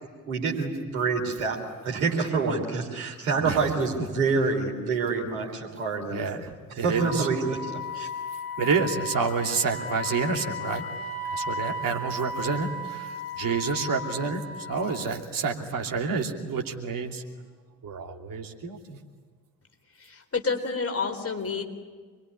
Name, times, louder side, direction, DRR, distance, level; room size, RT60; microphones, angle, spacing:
voice 1, 0.3-6.2 6.8-7.6 7.9-8.1, right 4 dB, 80° right, 0 dB, 3.4 m, -27 dB
voice 2, 3.4-3.7 4.0-4.1 6.1-7.3 8.3-10.8 11.2-17.2 17.8-19.0, right 5 dB, 50° right, 2 dB, 2.9 m, -29 dB
Wind instrument woodwind instrument, 6.9-15.1, left 2 dB, 55° left, 4.9 m, -35 dB
voice 3, 20.0-21.6, left 4 dB, 35° left, 5 dB, 4.1 m, -29 dB
27.0 x 22.0 x 9.9 m, 1.5 s
figure-of-eight pair, 40°, 42 cm